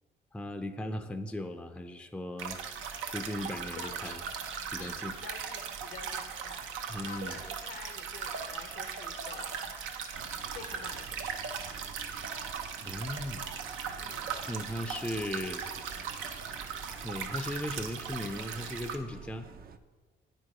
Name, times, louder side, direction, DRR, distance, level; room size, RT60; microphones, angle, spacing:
voice 1, 0.3-2.6 3.1-4.2 4.7-5.1 6.9-7.4 12.8-13.5 14.5-15.6 17.0-19.5, left 1 dB, 5° left, 8 dB, 0.5 m, -37 dB
sound 1, 2.4-19.0, right 6 dB, 85° right, 0.7 m, -38 dB
voice 2, 3.6-4.2 4.8-6.6 7.0-9.5 10.5-11.4 13.9-14.3, left 5 dB, 75° left, 5 dB, 0.8 m, -48 dB
sound 2, 10.1-19.8, right 6 dB, 50° right, 0.5 m, -50 dB
8.9 x 4.7 x 4.9 m, 1.4 s
cardioid pair, 90°, 20 cm